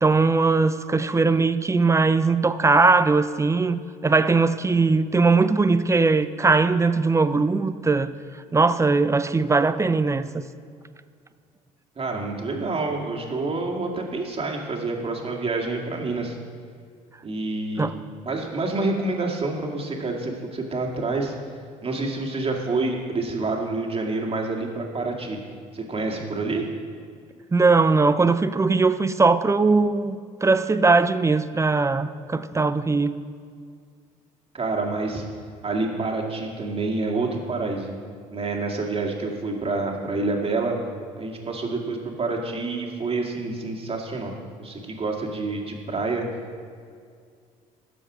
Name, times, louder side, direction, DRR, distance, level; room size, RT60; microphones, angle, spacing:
voice 1, 0.0-8.1 8.5-10.4 17.8-17.9 27.5-33.1, right 3 dB, 15° right, 13 dB, 0.5 m, -20 dB
voice 2, 12.0-16.4 17.2-17.9 18.2-21.4 21.8-25.4 25.7-26.6 34.5-35.2 35.6-38.0 38.3-40.8 41.2-44.3 44.6-46.3, right 3 dB, 35° right, 0 dB, 2.1 m, -28 dB
12.0 x 7.1 x 5.0 m, 2.1 s
hypercardioid pair, 65°, 17 cm